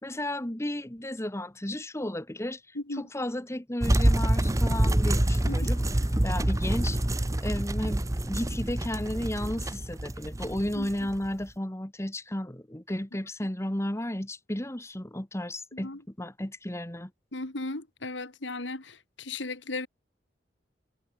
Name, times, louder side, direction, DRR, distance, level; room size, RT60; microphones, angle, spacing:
voice 1, 0.0-5.8 6.2-7.0 7.4-17.1, left 1 dB, 15° left, 1.4 m, -33 dB
sound 1, 3.8-11.4, right 1 dB, 15° right, 0.7 m, -26 dB
sound 2, 3.9-9.1, left 1 dB, 35° left, 3.3 m, -49 dB
voice 2, 17.3-19.9, left 2 dB, 80° left, 2.5 m, -36 dB
head